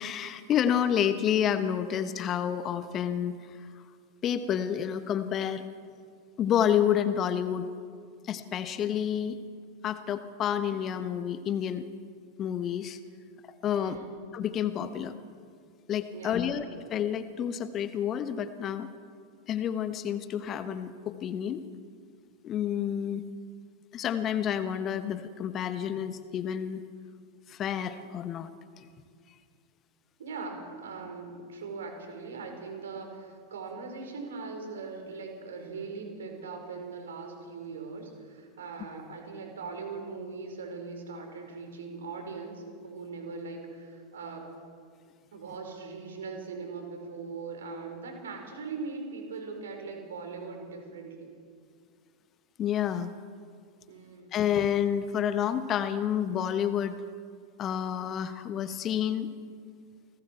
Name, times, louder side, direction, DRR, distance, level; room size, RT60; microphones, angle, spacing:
voice 1, 0.0-3.7 4.2-5.6 6.4-7.7 8.2-9.4 9.8-11.9 12.4-13.0 13.6-14.0 14.3-15.1 15.9-18.9 19.5-21.6 22.4-23.2 23.9-26.8 27.5-28.5 28.8-28.9 52.6-53.1 54.3-57.0 57.6-59.3, left 9 dB, 30° left, 12 dB, 1.1 m, -29 dB
voice 2, 13.7-14.1 16.1-16.6 30.2-44.5 45.3-51.3 53.9-54.3, right 4 dB, 65° right, 3 dB, 4.7 m, -40 dB
29.0 x 19.5 x 4.6 m, 2.1 s
figure-of-eight pair, 90°, 0 cm